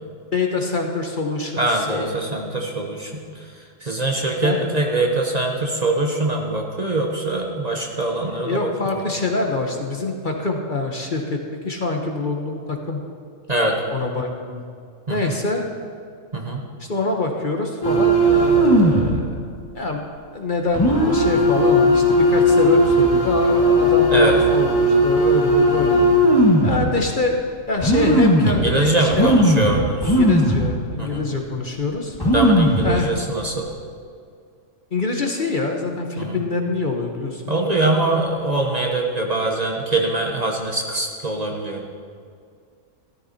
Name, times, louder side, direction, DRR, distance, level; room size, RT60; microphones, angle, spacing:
voice 1, 0.3-2.4 4.4-4.7 8.2-13.0 13.9-14.6 15.1-15.6 16.8-19.3 19.7-20.0 20.3-26.2 26.6-27.4 27.7-29.3 30.0-32.2 32.8-33.1 34.9-37.7, left 3 dB, 40° left, 2 dB, 1.3 m, -25 dB
voice 2, 1.6-3.2 3.8-8.7 13.5-13.8 15.1-15.3 16.3-16.6 24.1-24.4 28.5-30.2 31.0-31.2 32.2-33.7 36.2-36.4 37.5-41.8, right 2 dB, 35° right, 1 dB, 1.3 m, -23 dB
sound 1, 17.8-19.1 19.5-19.6 20.7-26.8 27.4-27.5 27.8-28.7 29.1-30.7 31.0-31.1 31.8-31.9 32.1-32.9 33.4-33.7, equal, 20° left, 1.7 m, -16 dB
13.5 x 13.5 x 4.2 m, 2.2 s
omnidirectional pair, 1.3 m